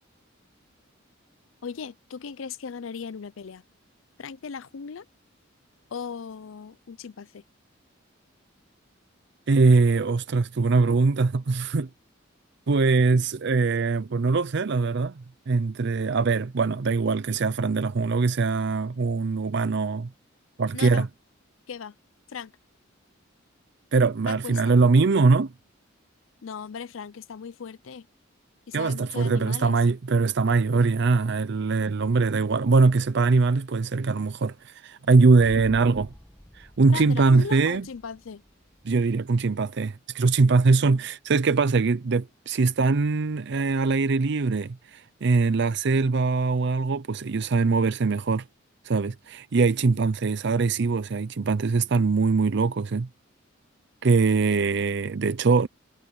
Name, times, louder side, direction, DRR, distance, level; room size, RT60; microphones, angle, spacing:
voice 1, 1.6-3.6 4.2-5.1 5.9-7.4 20.7-21.1 21.7-22.0 22.3-22.5 24.2-24.7 26.4-28.1 28.7-29.8 36.9-38.4 49.8-50.0, left 6 dB, 75° left, 0.5 m, -38 dB
voice 2, 9.5-11.9 12.7-20.1 20.6-21.1 23.9-25.5 28.7-36.1 36.5-37.8 38.8-48.4 48.8-53.1 54.0-55.7, right 4 dB, 60° right, 0.5 m, -22 dB
sound 1, 35.3-39.6, equal, 5° left, 1.2 m, -48 dB
head